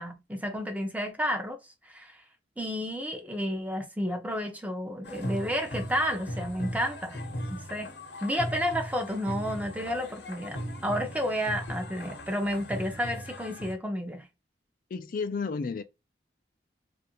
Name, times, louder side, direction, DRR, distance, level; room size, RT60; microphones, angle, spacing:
voice 1, 0.0-1.6 1.9-2.2 2.6-7.2 7.5-7.9 8.2-14.2, equal, 10° right, 0.6 m, -31 dB
sound 1, 5.0-13.7, equal, 75° left, 0.9 m, -38 dB
voice 2, 14.9-15.8, left 4 dB, 50° left, 0.4 m, -32 dB
3.2 x 2.5 x 2.9 m
head